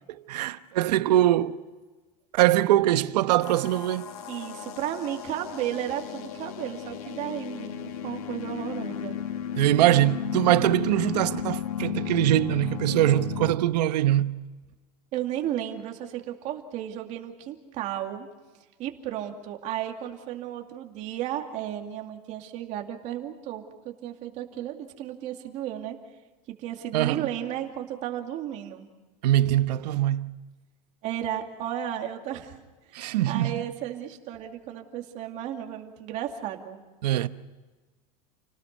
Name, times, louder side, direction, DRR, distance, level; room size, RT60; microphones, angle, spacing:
voice 1, 0.3-1.6 2.3-4.1 9.6-14.3 26.9-27.3 29.2-30.3 32.9-33.6 37.0-37.3, right 14 dB, 85° right, 1.1 m, -22 dB
sound 1, 3.4-13.5, left 9 dB, 60° left, 2.0 m, -34 dB
voice 2, 4.3-9.2 15.1-18.3 18.8-26.0 26.6-28.9 29.4-29.5 31.0-32.6 32.9-36.8, right 11 dB, 35° right, 2.5 m, -34 dB
29.5 x 19.0 x 5.5 m
supercardioid pair, 170°, 20 cm